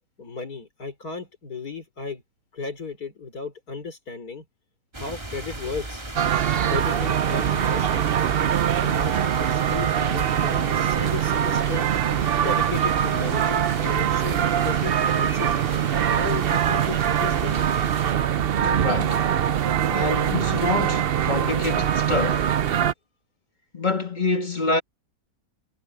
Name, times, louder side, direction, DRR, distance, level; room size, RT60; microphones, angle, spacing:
voice 1, 0.2-2.2 2.5-4.5 5.0-6.0 6.6-8.1 8.8-11.8 12.3-15.5 16.0-17.6, left 5 dB, 75° left, 4.3 m, -35 dB
sound 1, 4.9-18.1, right 2 dB, 15° right, 1.9 m, -38 dB
sound 2, 6.2-22.9, right 9 dB, 55° right, 0.6 m, -23 dB
voice 2, 18.5-19.2 19.9-22.6 23.7-24.8, left 3 dB, 30° left, 1.9 m, -26 dB
omnidirectional pair, 1.6 m